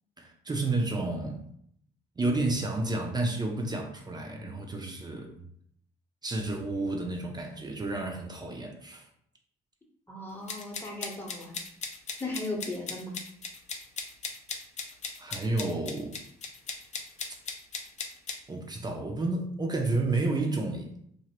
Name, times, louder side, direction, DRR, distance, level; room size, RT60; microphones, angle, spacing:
voice 1, 0.2-1.4 2.2-5.5 6.2-9.1 15.2-16.1 18.5-20.9, right 2 dB, 25° right, 2 dB, 0.4 m, -31 dB
voice 2, 10.1-11.6 12.2-13.1, left 2 dB, 10° left, -2 dB, 0.8 m, -36 dB
sound 1, 10.5-18.4, left 4 dB, 40° left, 0.5 m, -38 dB
2.5 x 2.0 x 2.8 m, 0.68 s
supercardioid pair, 65°, 18 cm